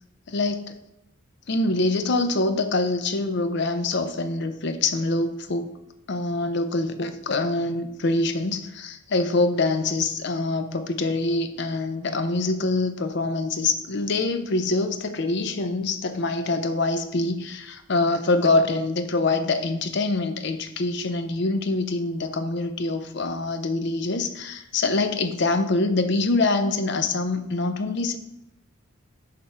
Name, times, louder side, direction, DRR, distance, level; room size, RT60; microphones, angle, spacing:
voice 1, 0.3-0.7 1.5-5.7 6.1-28.2, left 2 dB, 55° left, 8 dB, 0.6 m, -25 dB
6.6 x 3.5 x 5.6 m, 0.86 s
head